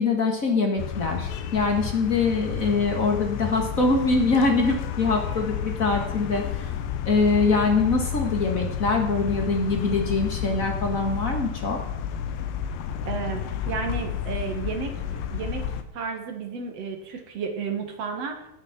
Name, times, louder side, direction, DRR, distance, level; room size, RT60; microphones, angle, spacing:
voice 1, 0.0-6.7 7.0-11.8, left 3 dB, 40° left, 2 dB, 1.2 m, -23 dB
sound 1, 0.8-15.8, left 8 dB, 80° left, 2.7 m, -31 dB
voice 2, 13.1-15.6 15.9-18.4, right 5 dB, 55° right, 4 dB, 2.3 m, -32 dB
19.0 x 6.6 x 6.0 m, 0.83 s
omnidirectional pair, 4.1 m